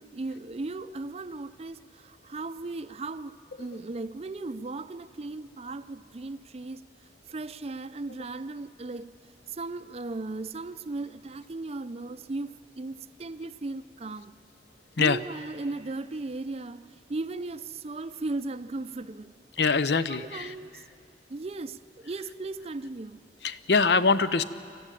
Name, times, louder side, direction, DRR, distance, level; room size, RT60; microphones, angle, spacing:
voice 1, 0.0-6.8 7.3-9.1 9.5-14.4 15.0-19.3 20.1-20.8 21.3-23.2, right 2 dB, 35° right, 0.5 m, -37 dB
voice 2, 19.6-20.5 23.4-24.4, left 4 dB, 65° left, 0.6 m, -23 dB
24.0 x 14.0 x 9.1 m
head